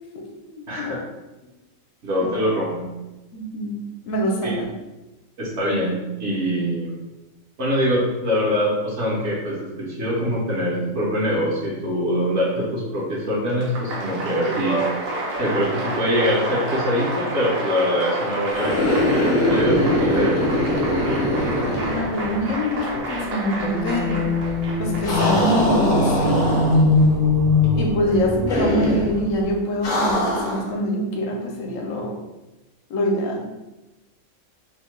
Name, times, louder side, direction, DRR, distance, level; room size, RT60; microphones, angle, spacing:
voice 1, 0.1-0.9 3.3-4.7 21.7-24.2 24.8-26.4 27.7-32.2 32.9-33.5, equal, 75° left, 1 dB, 0.9 m, -25 dB
voice 2, 0.7-1.0 2.0-2.9 4.4-4.5 5.4-7.0 7.6-14.8 15.4-20.4, equal, 65° right, -5 dB, 1.0 m, -23 dB
Applause, 13.5-25.4, right 2 dB, 85° right, 1.0 m, -29 dB
sound 1, 18.5-22.7 22.9-23.0 25.0-27.1 28.5-29.1 29.8-30.7, left 1 dB, 50° left, 0.7 m, -22 dB
sound 2, 23.4-29.4, left 2 dB, 40° right, 0.5 m, -22 dB
2.7 x 2.1 x 3.1 m, 1.0 s
omnidirectional pair, 1.4 m